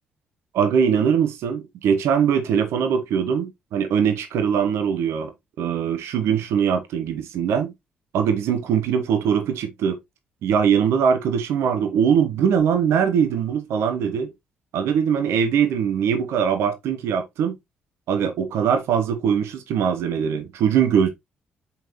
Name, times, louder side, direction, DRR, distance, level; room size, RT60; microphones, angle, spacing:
voice 1, 0.5-5.3 5.6-7.7 8.1-10.0 10.4-14.3 14.7-17.6 18.1-21.1, right 7 dB, 60° right, 1.0 m, -21 dB
7.1 x 5.5 x 2.7 m
figure-of-eight pair, 40°, 5 cm